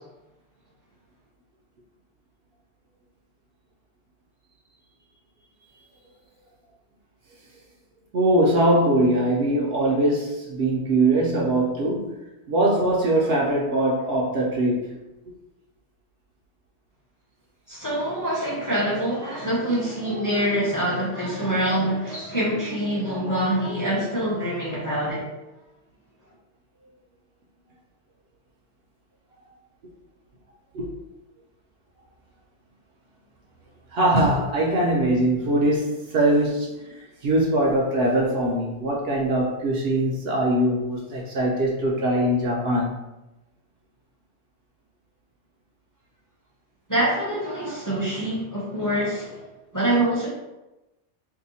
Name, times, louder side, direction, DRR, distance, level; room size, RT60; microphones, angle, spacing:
voice 1, 8.1-12.1 12.5-15.0 30.7-30.8 33.9-43.0, right 1 dB, 60° right, -3 dB, 0.7 m, -22 dB
voice 2, 17.7-25.3 46.9-49.5 49.7-50.3, right 1 dB, 20° left, -7 dB, 0.7 m, -25 dB
2.7 x 2.2 x 4.0 m, 1.0 s
omnidirectional pair, 1.3 m